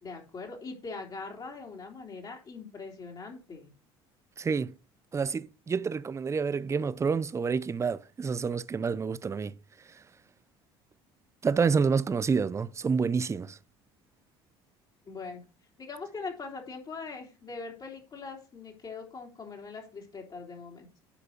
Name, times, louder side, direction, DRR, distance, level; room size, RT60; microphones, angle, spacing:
voice 1, 0.0-3.7 15.1-15.4 15.8-20.9, left 4 dB, 40° left, 3.4 m, -41 dB
voice 2, 4.4-4.7 5.1-9.5 9.9-10.0 11.4-13.6, right 5 dB, 25° right, 0.6 m, -28 dB
10.0 x 4.9 x 6.4 m
supercardioid pair, 85°, 12 cm